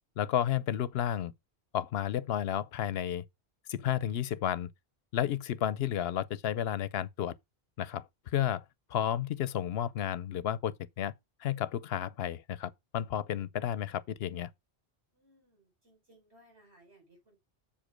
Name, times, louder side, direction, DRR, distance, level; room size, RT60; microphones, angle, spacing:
voice 1, 0.2-1.3 1.7-3.2 3.7-4.7 5.1-7.3 7.8-8.1 8.3-8.6 8.9-11.1 11.4-14.5, left 10 dB, 70° left, 0.8 m, -32 dB
voice 2, 15.1-17.4, right 1 dB, 90° right, 5.2 m, -62 dB
7.1 x 5.1 x 5.0 m
omnidirectional pair, 1.1 m